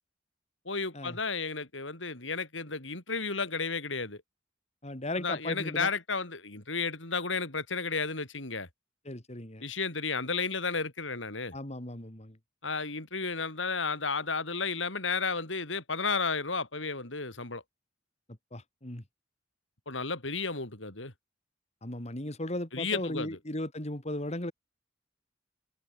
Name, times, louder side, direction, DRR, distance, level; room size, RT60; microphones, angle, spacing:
voice 1, 0.7-4.2 5.2-8.7 9.6-11.5 12.6-17.6 19.9-21.1 22.7-23.4, left 4 dB, 90° left, 5.8 m, -33 dB
voice 2, 4.8-5.9 9.0-9.6 11.5-12.4 18.5-19.0 21.8-24.5, left 1 dB, 35° left, 3.0 m, -36 dB
open air
head